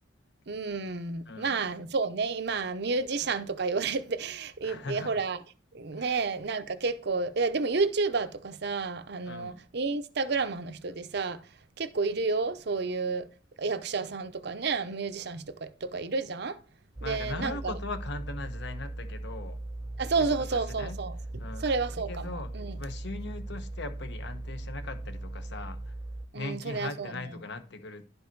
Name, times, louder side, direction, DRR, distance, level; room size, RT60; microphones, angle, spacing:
voice 1, 0.5-5.4 5.7-11.4 11.8-13.3 13.6-16.6 17.0-17.7 20.0-21.2 21.6-22.7 26.3-27.3, right 4 dB, 60° right, 0.7 m, -31 dB
voice 2, 1.3-1.6 4.6-5.2 6.0-6.2 9.2-9.6 17.0-19.6 20.2-21.0 21.4-21.7 22.0-26.0 26.3-28.1, left 3 dB, 65° left, 1.0 m, -40 dB
sound 1, 17.0-26.3, right 2 dB, 15° right, 0.4 m, -39 dB
11.0 x 5.3 x 4.6 m
head